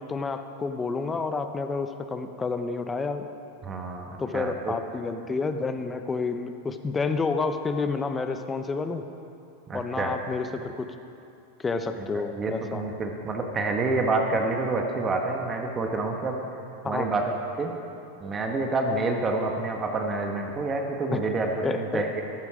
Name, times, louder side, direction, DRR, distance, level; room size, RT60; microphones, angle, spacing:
voice 1, 0.0-3.3 4.2-9.1 9.7-10.9 11.6-12.8 16.8-17.1 21.1-21.3 21.6-22.1, left 4 dB, 15° left, 8 dB, 0.8 m, -29 dB
voice 2, 3.6-4.7 9.7-10.1 12.3-16.4 16.8-17.7 18.2-22.2, right 3 dB, 25° right, 2 dB, 1.3 m, -28 dB
13.0 x 12.0 x 5.0 m, 2.7 s
supercardioid pair, 125°, 0 cm